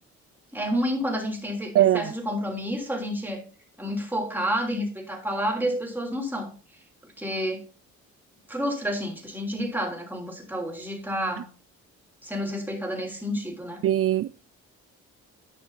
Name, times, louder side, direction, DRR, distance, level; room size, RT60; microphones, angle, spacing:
voice 1, 0.5-3.4 3.8-6.5 7.2-7.6 8.5-11.5 12.2-13.8, equal, 5° right, 3.3 m, -29 dB
voice 2, 13.8-14.3, right 12 dB, 50° right, 0.4 m, -20 dB
11.0 x 6.1 x 4.0 m
cardioid pair, 90°, 30 cm